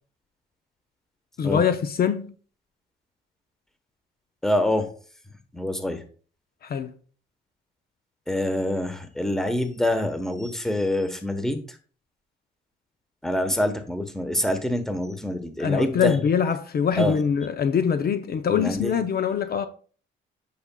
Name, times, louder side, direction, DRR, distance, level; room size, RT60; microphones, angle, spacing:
voice 1, 1.4-2.3 6.6-6.9 15.6-19.7, left 7 dB, 50° left, 0.6 m, -23 dB
voice 2, 4.4-4.9 5.5-6.0 8.3-11.8 13.2-16.2 17.0-17.2 18.5-18.9, left 1 dB, ahead, 1.1 m, -26 dB
8.5 x 5.8 x 2.3 m
cardioid pair, 90°, 20 cm